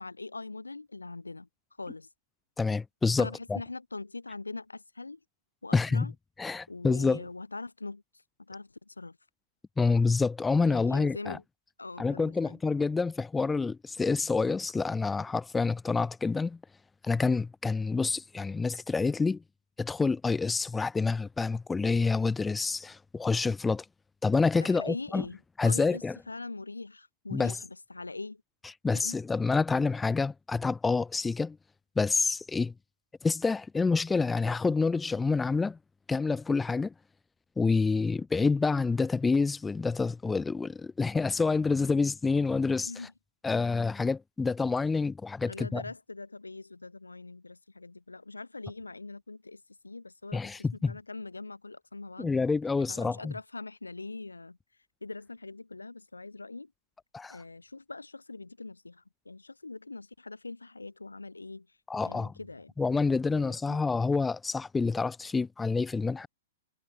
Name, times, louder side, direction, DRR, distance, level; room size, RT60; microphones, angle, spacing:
voice 1, 0.0-1.5 1.8-2.1 3.2-5.2 5.6-6.1 6.7-8.0 8.5-9.2 10.6-11.4 11.8-12.6 24.6-25.4 25.6-28.4 28.9-29.2 42.8-43.1 45.5-50.4 50.9-52.3 52.9-54.6 55.0-56.7 57.3-61.8 62.0-62.7 63.3-63.8, left 3 dB, 80° left, 5.7 m, -42 dB
voice 2, 2.6-3.6 5.7-6.1 6.4-7.2 9.8-11.4 12.0-16.6 17.0-19.4 19.8-23.8 24.2-25.2 25.6-26.2 27.3-27.6 28.8-31.6 31.9-32.7 33.2-35.8 36.1-36.9 37.6-42.9 43.4-45.8 50.3-50.9 52.2-53.3 57.1-57.4 61.9-62.3 62.8-66.3, left 4 dB, 10° left, 1.5 m, -27 dB
figure-of-eight pair, 105°, 0 cm